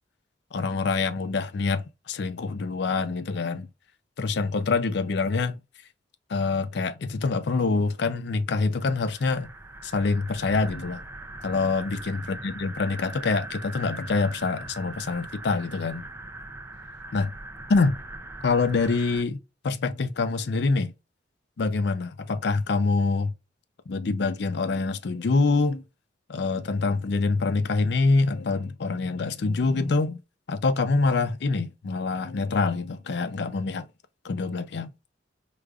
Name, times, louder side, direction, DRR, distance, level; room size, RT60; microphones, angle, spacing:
voice 1, 0.5-3.7 4.2-5.6 6.3-9.5 9.8-11.0 11.4-16.1 17.1-17.3 17.7-18.0 18.4-20.9 21.6-23.3 23.9-25.8 26.3-30.2 30.5-33.9 34.2-34.9, left 3 dB, 60° left, 0.4 m, -25 dB
sound 1, 8.8-19.2, right 2 dB, 10° right, 0.4 m, -41 dB
4.9 x 2.4 x 2.3 m
head